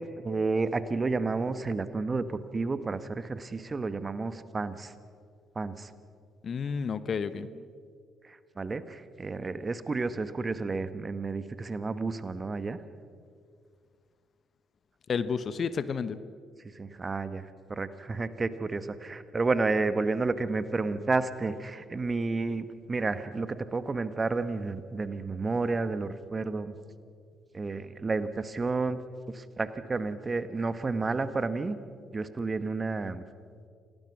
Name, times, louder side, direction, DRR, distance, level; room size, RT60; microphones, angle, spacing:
voice 1, 0.0-4.9 5.5-5.9 7.4-7.5 8.3-12.8 16.6-17.4 17.7-26.7 27.5-29.0 29.3-31.8 32.1-33.2, right 3 dB, 30° right, 12 dB, 1.4 m, -31 dB
voice 2, 6.4-7.5 15.1-16.2, left 6 dB, 45° left, 14 dB, 1.0 m, -31 dB
28.0 x 18.5 x 6.0 m, 2.1 s
hypercardioid pair, 45°, 0 cm